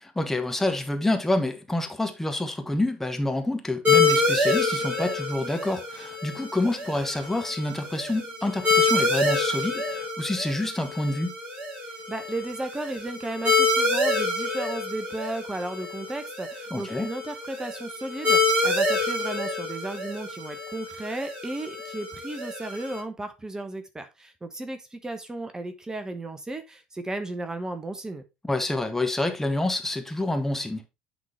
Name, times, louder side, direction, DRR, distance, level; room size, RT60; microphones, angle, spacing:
voice 1, 0.0-11.3 16.7-17.1 28.4-30.9, left 2 dB, 10° left, 1.0 m, -27 dB
sound 1, 3.8-23.0, left 3 dB, 35° right, 3.5 m, -27 dB
voice 2, 12.1-28.2, right 2 dB, 15° right, 1.0 m, -34 dB
9.4 x 3.9 x 3.4 m
figure-of-eight pair, 60°, 4 cm